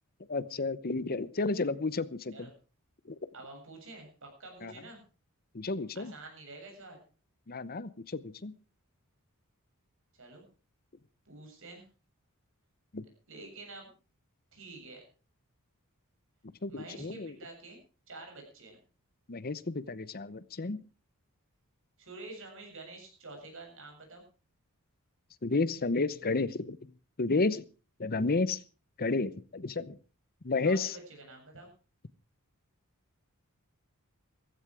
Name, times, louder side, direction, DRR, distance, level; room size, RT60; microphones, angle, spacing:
voice 1, 0.3-2.5 3.1-3.2 4.6-4.7 5.5-6.1 7.5-8.5 12.9-13.0 16.6-17.3 19.3-20.8 25.4-26.9 27.2-27.6 28.0-28.6 29.0-30.0 30.4-31.0, left 3 dB, 45° left, 16 dB, 0.9 m, -31 dB
voice 2, 3.3-5.0 5.9-7.0 10.2-10.5 11.3-11.8 13.3-13.9 14.5-15.0 16.7-17.8 18.1-18.8 22.0-24.2 30.6-31.7, right 2 dB, 60° right, 3 dB, 7.7 m, -48 dB
15.5 x 15.0 x 4.8 m, 0.37 s
head